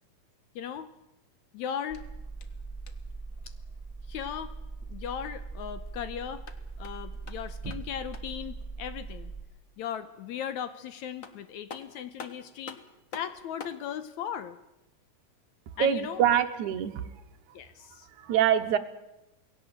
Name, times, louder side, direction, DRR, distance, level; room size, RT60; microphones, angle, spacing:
voice 1, 0.6-0.9 1.5-2.0 4.1-4.5 4.9-6.5 6.8-9.3 9.8-12.8 13.1-14.6 15.8-16.4 17.5-18.1, left 9 dB, 70° left, 12 dB, 2.1 m, -37 dB
sound 1, 1.8-3.2 6.2-8.5 10.7-10.8 11.2-13.8, left 4 dB, 50° left, 1.0 m, -47 dB
sound 2, 1.9-9.4, right 4 dB, 20° right, 0.9 m, -41 dB
voice 2, 15.8-17.1 17.8-18.8, right 9 dB, 70° right, 10 dB, 2.4 m, -25 dB
20.0 x 17.0 x 9.0 m, 0.95 s
omnidirectional pair, 3.7 m